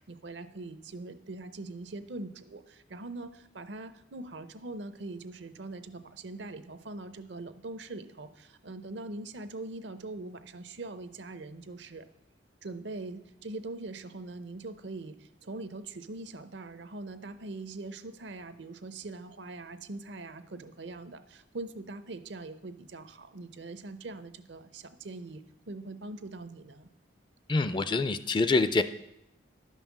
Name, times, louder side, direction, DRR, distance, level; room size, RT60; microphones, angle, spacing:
voice 1, 0.0-12.1 12.6-26.9, right 2 dB, 65° right, 12 dB, 0.7 m, -42 dB
voice 2, 27.5-28.8, left 3 dB, 25° left, 12 dB, 0.4 m, -25 dB
11.0 x 5.6 x 7.2 m, 0.84 s
head